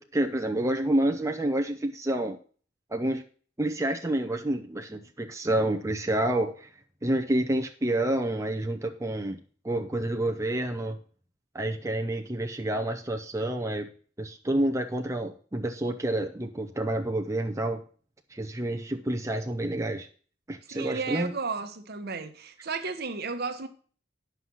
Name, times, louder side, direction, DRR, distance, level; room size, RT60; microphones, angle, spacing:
voice 1, 0.0-2.4 2.9-3.2 3.6-6.7 7.0-9.4 9.6-11.0 11.5-13.9 14.2-17.8 18.3-20.1 20.5-21.3, right 1 dB, 15° right, 0.6 m, -28 dB
voice 2, 20.7-23.7, right 4 dB, 55° right, 1.1 m, -33 dB
9.8 x 5.7 x 6.1 m
head